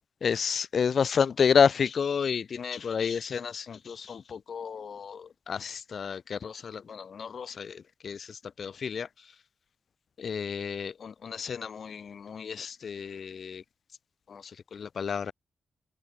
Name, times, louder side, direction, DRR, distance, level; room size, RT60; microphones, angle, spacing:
voice 1, 0.2-4.2 4.5-5.2 5.5-6.5 7.2-7.7 8.0-8.2 8.6-9.1 10.2-12.0 12.3-13.6 14.8-15.3, left 6 dB, 50° left, 0.7 m, -29 dB
wide cardioid pair, 150°, 0 cm